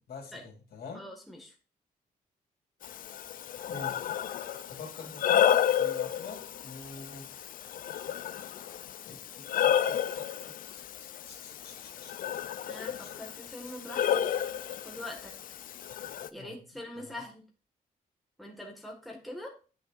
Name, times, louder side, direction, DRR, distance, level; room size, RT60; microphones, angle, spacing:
voice 1, 0.0-1.0 3.7-4.1 4.7-7.3 9.0-12.1 13.0-13.1 16.3-16.6 16.9-17.2, left 4 dB, 80° left, 0 dB, 2.8 m, -46 dB
voice 2, 0.9-1.5 12.6-14.2 14.8-15.3 16.3-17.4 18.4-19.5, left 1 dB, ahead, -1 dB, 1.7 m, -43 dB
Breathing, 2.8-16.3, left 10 dB, 60° left, 0.4 m, -31 dB
10.5 x 5.7 x 2.5 m, 0.35 s
wide cardioid pair, 155°, 16 cm